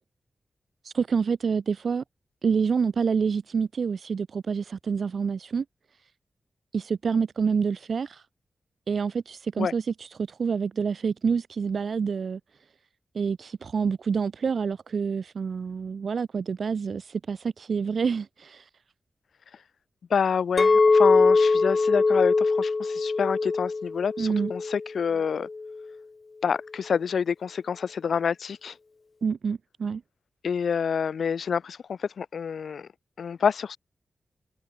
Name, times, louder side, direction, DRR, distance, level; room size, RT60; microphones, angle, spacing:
voice 1, 0.8-2.0 2.4-5.6 6.7-8.2 8.9-12.4 13.1-18.7 24.2-24.5 29.2-30.0, right 6 dB, 60° right, 1.3 m, -27 dB
voice 2, 20.1-25.5 26.4-28.7 30.4-32.9 33.2-33.8, left 6 dB, 80° left, 1.7 m, -27 dB
Chink clink, 20.6-24.9 25.4-25.8, left 3 dB, 35° left, 1.1 m, -22 dB
wide cardioid pair, 140°, 0 cm